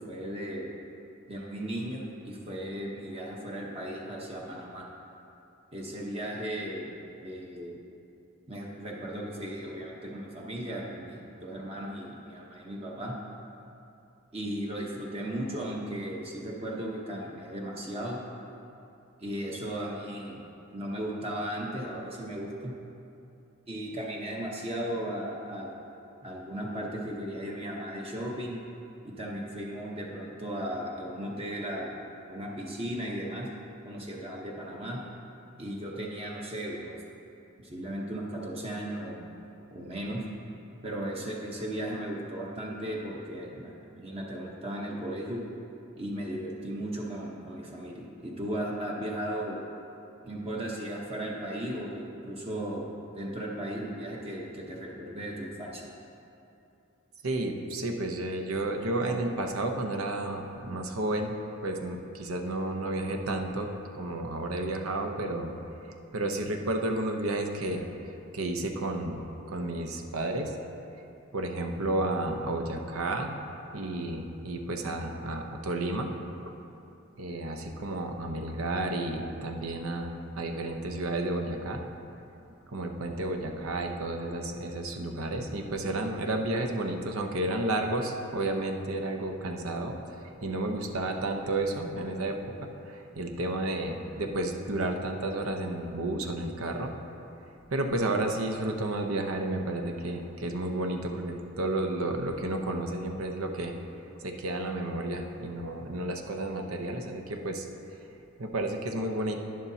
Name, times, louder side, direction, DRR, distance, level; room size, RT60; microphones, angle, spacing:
voice 1, 0.1-0.7 1.3-4.9 5.7-6.9 7.2-7.8 8.5-13.1 14.3-18.2 19.2-20.4 20.7-22.7 23.7-25.7 26.2-28.6 29.0-32.0 32.3-33.5 33.8-35.0 35.6-37.0 37.6-39.2 39.7-40.2 40.8-45.4 46.0-49.6 50.2-52.9 53.1-55.9 74.8-75.0, right 1 dB, 25° right, -3 dB, 0.9 m, -36 dB
voice 2, 57.2-61.3 61.6-65.5 66.1-67.8 68.3-69.2 69.5-70.5 71.3-73.4 73.7-76.1 77.2-81.8 82.7-89.9 90.4-96.9 97.7-103.7 104.2-107.7 108.4-109.3, right 2 dB, 80° right, 4 dB, 0.8 m, -31 dB
11.5 x 10.0 x 2.8 m, 2.7 s
head